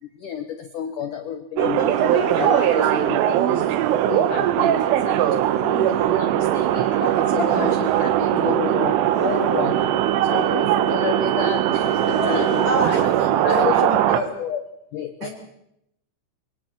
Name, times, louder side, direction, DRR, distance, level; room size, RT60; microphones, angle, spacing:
voice 1, 0.0-3.8 4.1-9.9 10.2-13.1 13.4-14.6 14.9-15.3, left 8 dB, 75° left, 8 dB, 1.9 m, -31 dB
Laughter, 1.6-10.6 11.5-13.8, left 3 dB, 45° left, 1.6 m, -35 dB
sound 1, 1.6-14.2, right 12 dB, 85° right, 3.6 m, -20 dB
voice 2, 7.5-7.8 12.6-14.3 15.2-15.5, right 1 dB, 35° right, 1 dB, 5.6 m, -29 dB
28.0 x 24.0 x 4.5 m, 0.76 s
omnidirectional pair, 5.6 m